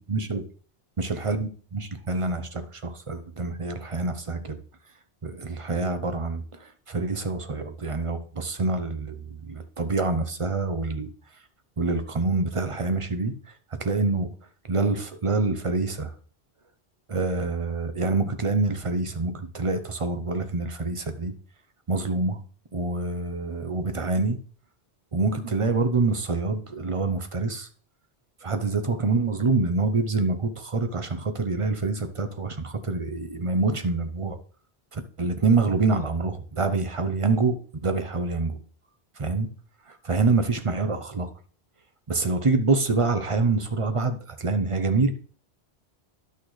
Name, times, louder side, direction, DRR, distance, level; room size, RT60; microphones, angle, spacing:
voice 1, 0.1-0.4 1.0-4.6 5.2-6.4 6.9-11.1 11.8-13.3 13.8-14.3 14.7-16.1 17.1-21.3 21.9-22.4 22.7-24.4 25.1-27.7 28.4-34.3 34.9-38.6 39.2-39.5 39.9-41.3 42.1-45.1, right 3 dB, 35° right, 9 dB, 0.7 m, -26 dB
11.0 x 6.2 x 3.2 m, 0.43 s
omnidirectional pair, 1.1 m